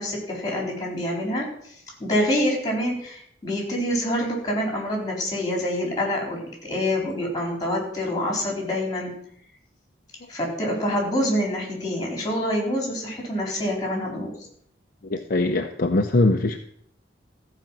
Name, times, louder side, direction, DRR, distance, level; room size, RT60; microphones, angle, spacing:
voice 1, 0.0-1.5 2.0-9.2 10.3-14.3, left 1 dB, 20° left, 0 dB, 4.2 m, -26 dB
voice 2, 15.1-16.6, left 2 dB, 50° left, 4 dB, 0.7 m, -21 dB
14.5 x 5.2 x 7.4 m, 0.67 s
head